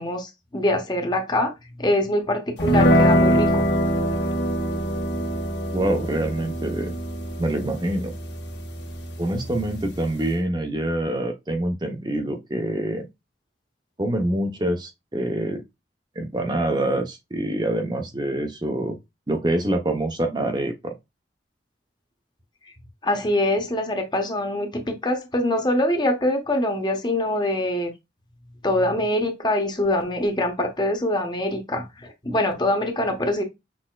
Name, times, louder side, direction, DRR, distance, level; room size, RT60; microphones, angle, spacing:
voice 1, 0.0-1.5 1.8-3.6 23.0-27.9 28.6-33.4, left 1 dB, 25° left, 1.0 m, -24 dB
sound 1, 2.6-10.4, equal, 75° left, 1.4 m, -24 dB
voice 2, 5.7-6.9 7.4-8.1 9.2-13.1 14.0-15.6 16.2-19.0 19.3-20.9, right 1 dB, 25° right, 0.7 m, -25 dB
6.2 x 3.5 x 2.3 m
head